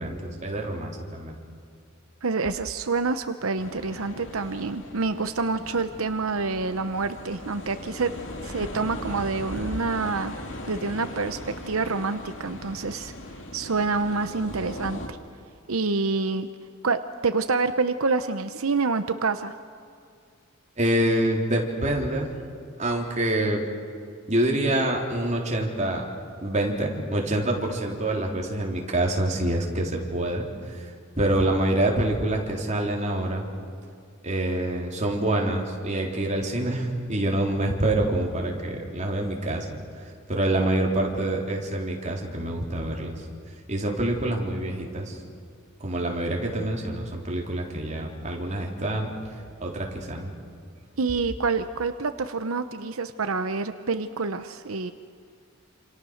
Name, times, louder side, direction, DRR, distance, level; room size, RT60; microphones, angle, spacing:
voice 1, 0.0-1.3 20.8-22.3 22.8-23.6 24.3-26.1 26.4-30.5 30.7-30.9 31.2-33.4 34.2-39.7 40.3-43.1 43.7-45.2 45.8-49.1 49.6-50.3, right 1 dB, 35° right, 0 dB, 3.8 m, -26 dB
voice 2, 2.2-8.1 8.4-10.3 10.7-11.4 11.7-13.1 13.5-15.2 15.7-16.5 16.8-19.5 51.0-54.9, right 4 dB, 85° right, 10 dB, 0.9 m, -27 dB
sound 1, 3.6-15.1, left 1 dB, 60° left, 2.8 m, -39 dB
28.5 x 27.5 x 6.5 m, 2.3 s
head